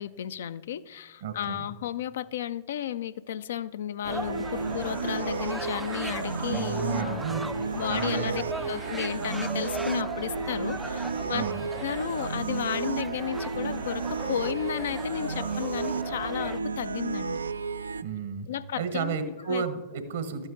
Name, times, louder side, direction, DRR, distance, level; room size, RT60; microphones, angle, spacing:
voice 1, 0.0-7.2 7.7-8.4 8.7-11.4 11.7-17.4 18.5-19.6, left 10 dB, 70° left, 0.3 m, -33 dB
voice 2, 1.2-1.7 6.5-7.5 7.9-8.3 11.3-11.7 18.0-18.5 18.8-20.5, right 6 dB, 70° right, 1.1 m, -32 dB
sound 1, 4.0-16.6, right 2 dB, 5° right, 0.3 m, -39 dB
sound 2, 4.1-18.0, right 4 dB, 85° right, 0.3 m, -32 dB
12.5 x 8.9 x 3.8 m
hypercardioid pair, 100°, 0 cm